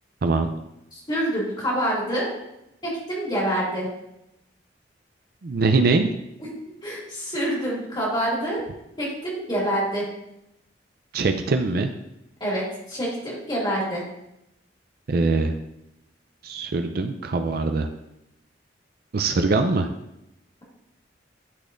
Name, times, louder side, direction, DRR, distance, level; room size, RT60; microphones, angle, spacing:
voice 1, 0.9-2.3 2.8-3.9 6.4-6.5 6.8-8.6 9.0-10.0 12.4-14.0, equal, 25° left, -5 dB, 2.3 m, -26 dB
voice 2, 5.4-6.1 11.1-11.9 15.1-15.5 16.4-17.9 19.1-19.9, right 3 dB, 50° right, 7 dB, 0.4 m, -22 dB
11.0 x 4.1 x 2.5 m, 0.85 s
head